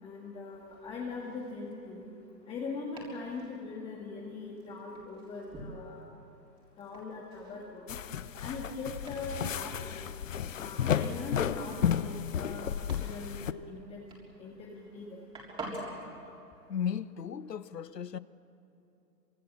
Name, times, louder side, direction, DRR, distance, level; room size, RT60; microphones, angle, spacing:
voice 1, 0.0-2.0 2.5-6.0 6.8-8.0 8.4-10.1 10.5-12.6 13.0-14.0 14.4-15.2, left 4 dB, 10° left, 1.8 m, -41 dB
Domestic sounds home sounds, 0.5-16.1, right 2 dB, 10° right, 3.7 m, -50 dB
sound 1, 7.9-13.5, left 8 dB, 50° left, 0.9 m, -33 dB
voice 2, 16.7-18.2, left 8 dB, 75° left, 1.0 m, -35 dB
26.5 x 24.5 x 7.4 m
figure-of-eight pair, 140°, 49 cm